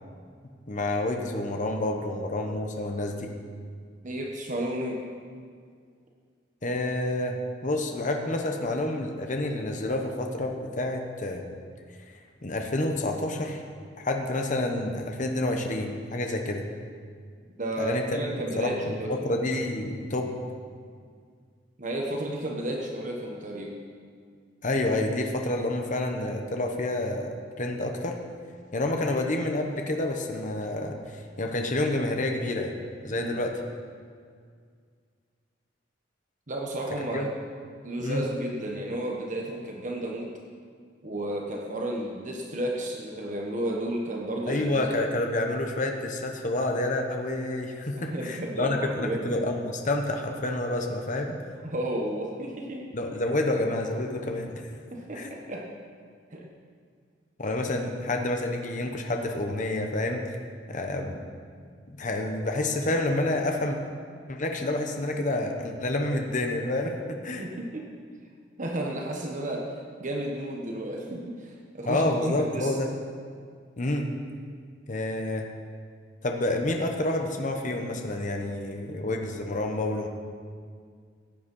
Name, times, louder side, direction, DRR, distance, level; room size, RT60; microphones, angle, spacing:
voice 1, 0.7-3.3 6.6-11.4 12.4-13.6 14.0-16.6 17.8-18.0 18.3-18.7 19.1-20.3 24.6-28.2 28.7-32.7 33.0-33.5 37.1-37.3 38.0-38.2 44.5-51.4 52.9-54.6 55.1-55.3 57.4-60.2 60.7-61.2 61.9-63.8 64.3-67.4 71.9-72.9 73.8-74.1 74.9-75.5 76.2-80.1, left 2 dB, 45° left, 3 dB, 1.2 m, -28 dB
voice 2, 4.0-5.0 17.6-19.1 21.8-23.7 33.1-33.4 36.5-37.3 37.8-40.3 41.0-44.6 47.9-49.3 51.6-52.8 54.9-55.7 56.3-56.5 67.4-67.9 68.6-69.7 70.0-72.7, right 1 dB, 45° right, 0 dB, 1.4 m, -32 dB
15.0 x 9.5 x 5.5 m, 2.1 s
head